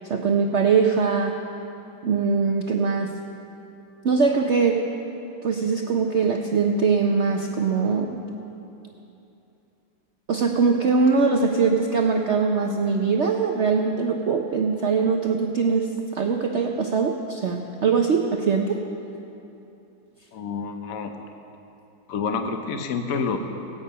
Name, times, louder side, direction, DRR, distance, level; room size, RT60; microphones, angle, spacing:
voice 1, 0.1-1.4 2.0-3.1 4.0-4.8 5.4-8.2 10.3-18.8, right 5 dB, 90° right, 2 dB, 0.6 m, -22 dB
voice 2, 20.3-21.1 22.1-23.4, left 5 dB, 60° left, 6 dB, 1.0 m, -28 dB
17.5 x 8.9 x 5.4 m, 2.9 s
omnidirectional pair, 2.1 m